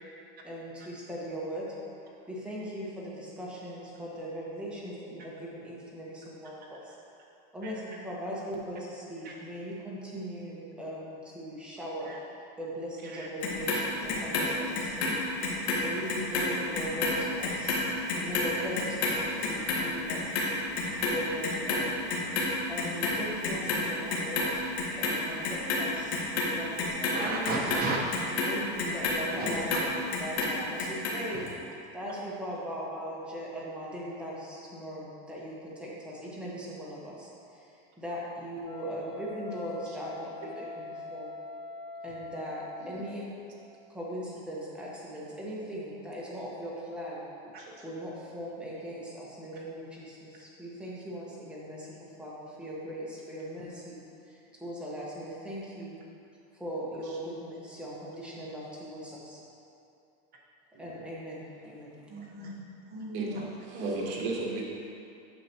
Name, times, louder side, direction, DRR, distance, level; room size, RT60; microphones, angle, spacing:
voice 1, 0.4-1.8 2.3-7.0 7.5-12.1 12.6-15.1 15.8-17.8 18.2-20.4 21.1-21.8 22.7-24.6 25.0-26.2 26.5-27.6 28.5-31.5 31.9-41.3 42.0-43.2 43.9-47.2 47.8-54.0 54.3-56.0 56.5-59.4 60.8-62.0, equal, 5° right, -6 dB, 1.3 m, -39 dB
Clock, 13.4-15.8 16.1-22.5 22.8-23.8 24.1-25.1 25.4-29.9 30.1-31.1 31.5-31.6, left 3 dB, 90° left, 1.7 m, -29 dB
voice 2, 27.1-28.0 29.4-29.8 31.3-31.4 62.1-63.5 63.7-64.0, right 3 dB, 30° right, -2 dB, 1.2 m, -36 dB
Wind instrument woodwind instrument, 38.6-43.3, left 3 dB, 50° left, 1.8 m, -43 dB
voice 3, 63.1-63.5 63.8-64.6, right 3 dB, 60° right, -2 dB, 1.5 m, -35 dB
8.9 x 6.7 x 3.0 m, 2.7 s
supercardioid pair, 145°, 31 cm